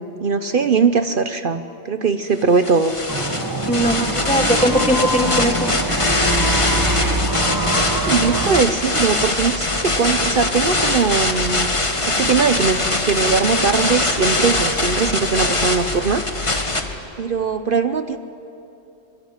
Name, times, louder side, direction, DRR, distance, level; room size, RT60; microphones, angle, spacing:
voice 1, 0.2-2.9 8.0-11.7 12.1-16.2 17.2-18.2, right 5 dB, 55° right, 9 dB, 1.0 m, -20 dB
sound 1, 2.5-16.8, left 2 dB, 30° left, 1.7 m, -22 dB
sound 2, 3.1-8.6, right 1 dB, 20° right, 1.3 m, -24 dB
voice 2, 3.7-5.7, equal, 5° left, 6 dB, 1.4 m, -20 dB
sound 3, 3.8-16.9, left 2 dB, 60° left, 5.0 m, -35 dB
25.5 x 23.0 x 9.7 m, 2.9 s
omnidirectional pair, 1.1 m